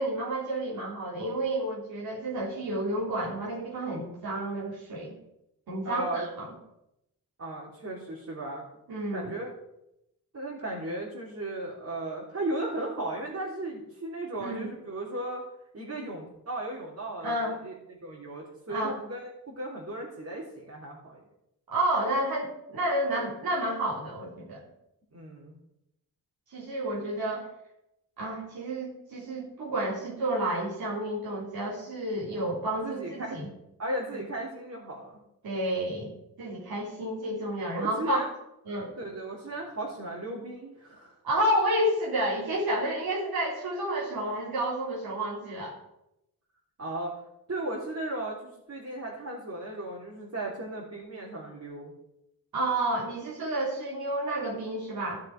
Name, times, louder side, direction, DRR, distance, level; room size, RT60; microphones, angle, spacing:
voice 1, 0.0-5.2 5.7-6.5 8.9-9.3 14.4-14.7 17.2-17.6 18.7-18.9 21.7-24.6 26.5-27.5 28.2-33.5 35.4-36.1 36.4-38.2 38.7-38.9 41.2-45.7 52.5-55.2, right 1 dB, 85° right, -5 dB, 3.9 m, -30 dB
voice 2, 5.8-6.3 7.4-8.6 9.1-9.5 10.3-15.4 15.7-21.2 25.1-25.6 32.8-33.4 33.8-35.2 37.8-38.3 39.0-41.1 46.8-47.2 47.5-51.9, right 1 dB, 45° right, -4 dB, 3.3 m, -36 dB
14.5 x 6.4 x 5.1 m, 0.85 s
cardioid pair, 65°, 36 cm